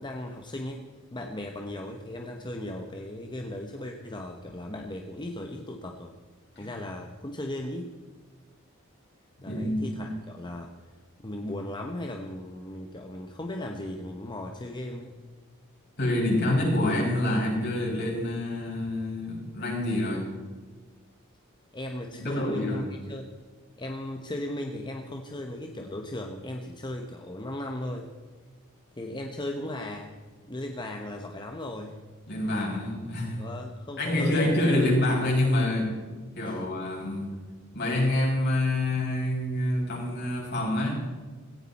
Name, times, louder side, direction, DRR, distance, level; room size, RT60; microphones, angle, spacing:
voice 1, 0.0-6.1 6.5-7.9 9.4-10.7 11.2-15.1 21.7-23.3 23.8-28.1 28.9-30.1 30.5-32.0 33.4-34.7 36.5-36.6, left 1 dB, 20° left, 3 dB, 1.0 m, -37 dB
voice 2, 9.5-10.1 16.0-20.2 22.1-22.8 32.3-33.4 34.0-37.3 37.7-40.9, left 1 dB, 50° left, -2 dB, 6.1 m, -27 dB
17.5 x 16.0 x 4.2 m, 1.4 s
head